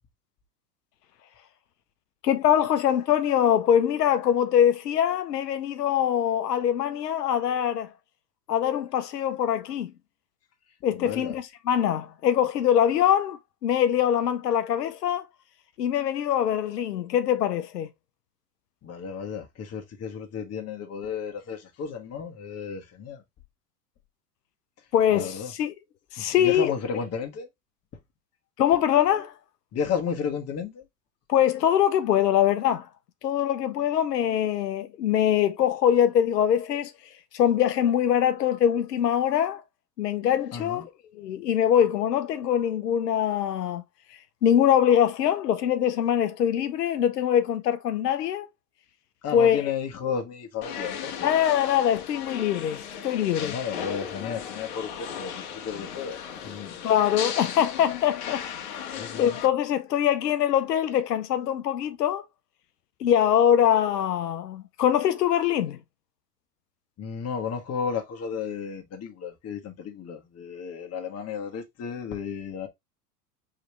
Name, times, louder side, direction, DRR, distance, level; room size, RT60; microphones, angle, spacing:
voice 1, 2.2-7.9 8.5-9.9 10.8-15.3 15.8-17.9 24.9-25.7 26.1-26.7 28.6-29.3 31.3-32.9 33.2-36.9 37.3-39.6 40.0-40.9 41.2-43.8 44.4-48.5 49.3-49.6 51.2-53.6 56.8-62.2 63.0-65.8, left 10 dB, 90° left, 0.7 m, -23 dB
voice 2, 10.9-11.4 18.8-23.2 25.1-25.5 26.2-27.5 29.7-30.8 40.5-40.8 49.2-51.3 53.4-56.8 59.0-59.4 67.0-72.7, left 6 dB, 30° left, 1.5 m, -33 dB
sound 1, 50.6-59.5, left 8 dB, 65° left, 1.4 m, -36 dB
4.9 x 3.3 x 3.1 m
hypercardioid pair, 95°, 47 cm